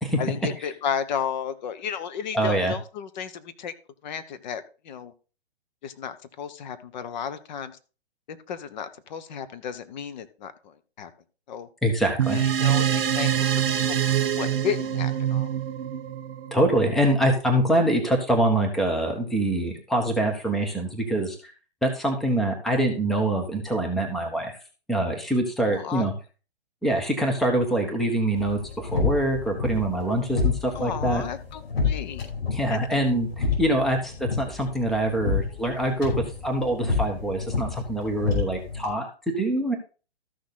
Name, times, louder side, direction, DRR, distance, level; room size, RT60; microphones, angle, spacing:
voice 1, 0.2-3.7 4.0-5.1 5.8-7.8 8.3-11.1 11.5-11.7 12.3-13.6 13.9-14.0 14.2-15.5 25.7-26.1 30.7-32.2 32.7-33.0, left 7 dB, 45° left, 11 dB, 1.2 m, -33 dB
voice 2, 2.3-2.7 11.8-12.4 16.5-21.4 21.8-24.6 24.9-26.1 26.8-31.2 32.5-36.1 36.4-39.7, right 1 dB, ahead, 3 dB, 1.0 m, -24 dB
sound 1, 12.2-17.0, right 9 dB, 60° right, 1.6 m, -25 dB
sound 2, 28.3-38.9, left 5 dB, 65° left, 5.3 m, -29 dB
13.5 x 6.4 x 4.0 m, 0.35 s
hypercardioid pair, 145°, 32 cm